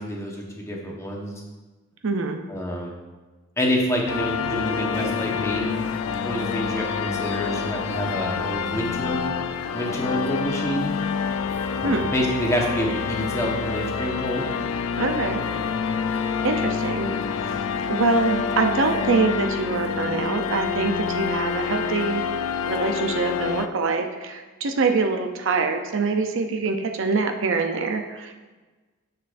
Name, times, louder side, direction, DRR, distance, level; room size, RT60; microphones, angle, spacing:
voice 1, 0.0-1.3 2.5-2.9 3.6-5.7 6.2-9.2 9.7-10.9 11.8-14.5, equal, 15° left, -1 dB, 1.2 m, -27 dB
voice 2, 2.0-2.4 11.8-12.1 15.0-15.4 16.4-17.1 17.4-22.2 22.7-28.3, right 4 dB, 65° right, 5 dB, 0.6 m, -24 dB
sound 1, 4.1-23.7, left 6 dB, 80° left, 0.4 m, -27 dB
9.9 x 6.7 x 2.6 m, 1.3 s
head